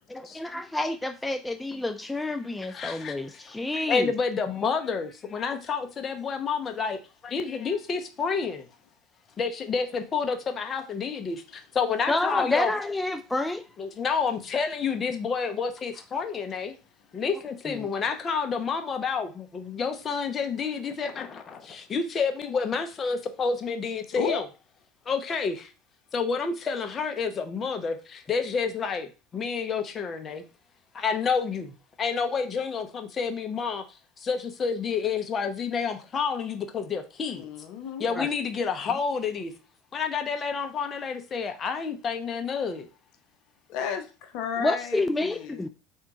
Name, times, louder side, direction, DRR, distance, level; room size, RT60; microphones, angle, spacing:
voice 1, 0.1-4.1 12.1-13.6 17.7-17.9 38.1-38.3 44.6-45.7, left 2 dB, 10° left, 0.3 m, -29 dB
voice 2, 2.7-8.7 9.4-12.7 13.8-16.7 17.1-24.4 25.1-25.7 26.1-30.4 30.9-33.8 34.2-37.5 38.0-39.5 39.9-42.9, left 5 dB, 35° left, 0.8 m, -29 dB
voice 3, 37.3-38.1 43.7-45.6, left 7 dB, 65° left, 0.8 m, -33 dB
3.6 x 2.8 x 4.6 m
supercardioid pair, 95°, 0 cm